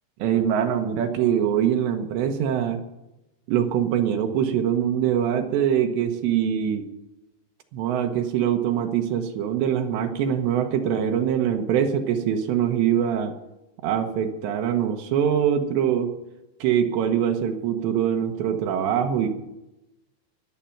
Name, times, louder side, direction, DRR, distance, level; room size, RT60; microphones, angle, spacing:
voice 1, 0.2-2.8 3.5-6.9 7.7-13.3 13.8-16.1 16.6-19.3, right 9 dB, 80° right, 5 dB, 3.3 m, -23 dB
22.0 x 8.2 x 5.8 m, 0.95 s
omnidirectional pair, 5.1 m